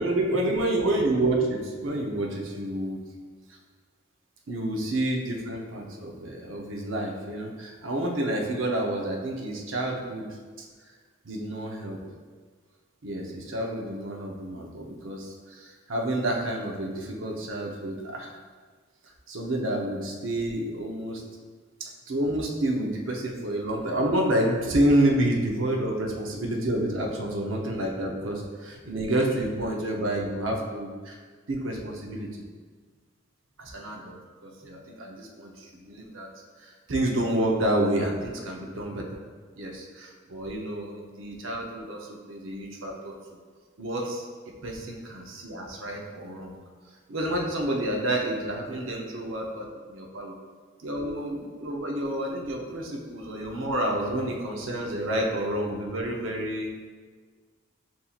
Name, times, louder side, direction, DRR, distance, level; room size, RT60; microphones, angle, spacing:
voice 1, 0.0-3.0 4.5-10.3 11.2-12.0 13.0-18.3 19.3-21.2 21.8-31.2 31.5-32.3 33.6-36.3 36.6-39.0 39.5-43.1 43.8-44.2 44.6-46.6 47.1-50.3 50.8-56.7, right 1 dB, 70° right, -1 dB, 0.7 m, -29 dB
7.3 x 2.7 x 2.4 m, 1.5 s
head